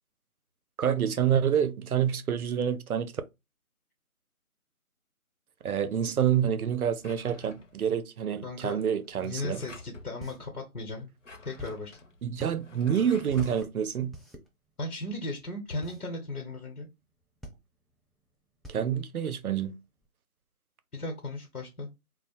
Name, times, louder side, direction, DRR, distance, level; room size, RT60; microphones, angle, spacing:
voice 1, 0.8-3.1 5.6-9.6 12.2-14.1 18.7-19.8, right 8 dB, 75° right, 0.5 m, -27 dB
Drawer open or close, 7.0-8.0 9.0-10.1 11.0-13.6, left 3 dB, 60° left, 0.5 m, -47 dB
voice 2, 8.4-8.8 9.2-11.1 11.4-12.0 14.8-16.9 20.9-21.9, left 2 dB, 85° left, 0.9 m, -36 dB
sound 1, 10.2-20.1, right 1 dB, ahead, 0.4 m, -49 dB
2.4 x 2.0 x 2.9 m
figure-of-eight pair, 180°, 44 cm